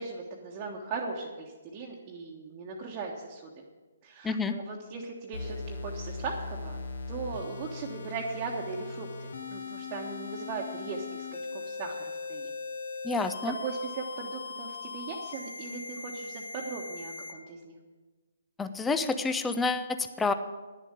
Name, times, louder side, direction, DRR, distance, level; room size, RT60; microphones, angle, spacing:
voice 1, 0.0-3.6 4.0-11.3 11.5-12.5 13.6-17.7, right 4 dB, 30° right, -3 dB, 1.3 m, -38 dB
voice 2, 4.2-4.6 13.0-13.5 18.6-20.3, left 4 dB, 10° left, 9 dB, 0.6 m, -29 dB
sound 1, 5.3-17.3, left 4 dB, 65° left, 1.3 m, -39 dB
10.5 x 7.3 x 8.8 m, 1.3 s
figure-of-eight pair, 130°, 0 cm